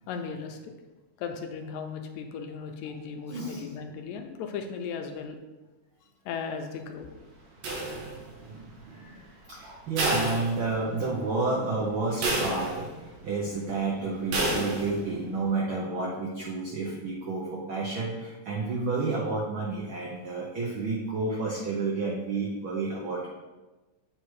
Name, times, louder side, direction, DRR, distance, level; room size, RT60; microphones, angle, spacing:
voice 1, 0.1-0.7 1.2-5.4 6.3-7.1, left 6 dB, 80° left, 5 dB, 1.8 m, -36 dB
voice 2, 3.3-3.6 7.9-9.2 9.5-23.3, right 3 dB, 85° right, -3 dB, 1.1 m, -31 dB
sound 1, 7.6-8.5 10.0-11.1 11.5-11.6 12.2-13.1 14.3-15.1, right 2 dB, 70° right, 2.3 m, -30 dB
8.0 x 3.3 x 4.7 m, 1.2 s
omnidirectional pair, 3.5 m